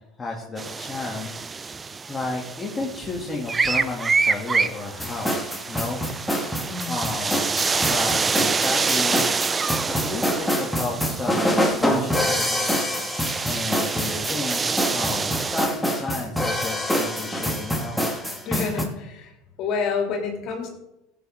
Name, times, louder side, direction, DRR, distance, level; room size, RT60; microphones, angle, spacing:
voice 1, 0.2-6.3 6.9-9.7 10.0-12.4 13.4-14.6 14.9-18.0, left 3 dB, 20° left, -3 dB, 2.8 m, -32 dB
sound 1, 0.6-15.7, right 4 dB, 25° right, 0.6 m, -27 dB
sound 2, 5.0-18.8, equal, 5° left, 2.1 m, -26 dB
voice 2, 6.6-6.9 18.4-19.3 19.6-20.7, left 5 dB, 55° left, 1 dB, 3.4 m, -28 dB
17.0 x 8.1 x 3.9 m, 0.90 s
hypercardioid pair, 80°, 0 cm